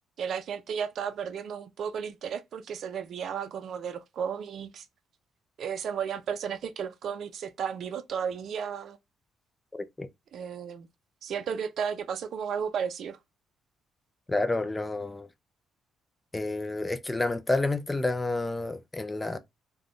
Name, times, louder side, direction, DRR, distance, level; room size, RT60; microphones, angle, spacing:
voice 1, 0.2-4.8 5.6-9.0 10.3-10.9 11.2-13.2, right 7 dB, 60° right, 0.4 m, -33 dB
voice 2, 9.7-10.1 14.3-15.3 16.3-19.4, left 2 dB, 15° left, 0.4 m, -29 dB
2.4 x 2.2 x 3.4 m
cardioid pair, 110°, 0 cm